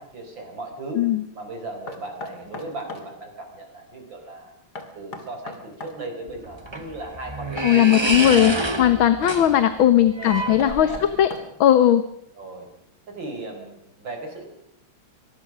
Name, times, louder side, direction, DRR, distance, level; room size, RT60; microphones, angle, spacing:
voice 1, 0.0-1.0 1.3-4.5 5.0-8.9 10.2-11.0 12.4-12.7 13.1-14.5, right 2 dB, 60° right, 4 dB, 5.3 m, -37 dB
Knock, 1.9-3.1 4.8-6.0 7.6-8.8 10.3-11.7, left 3 dB, 50° left, 2.9 m, -37 dB
sound 1, 6.3-11.3, right 2 dB, 20° right, 0.9 m, -29 dB
voice 2, 7.6-10.9 11.2-11.3 11.6-12.0, left 11 dB, 70° left, 11 dB, 1.8 m, -17 dB
24.5 x 20.0 x 6.2 m, 0.72 s
omnidirectional pair, 2.3 m